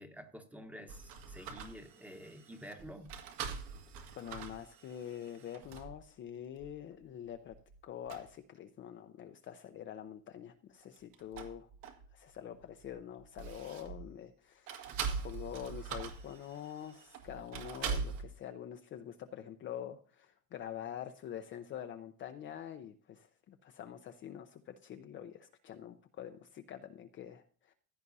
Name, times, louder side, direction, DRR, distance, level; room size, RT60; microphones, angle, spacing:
voice 1, 0.0-3.1, equal, 5° right, 7 dB, 1.1 m, -49 dB
sound 1, 0.9-6.0 6.6-6.7 7.3-7.7 8.1-8.3 10.8-12.3 12.6-14.1 14.7-18.2, right 6 dB, 60° right, 2.1 m, -43 dB
voice 2, 4.2-7.6 7.8-11.7 12.1-14.9 15.2-27.7, left 10 dB, 30° left, 7 dB, 0.6 m, -46 dB
15.5 x 9.7 x 2.7 m, 0.42 s
supercardioid pair, 125°, 40 cm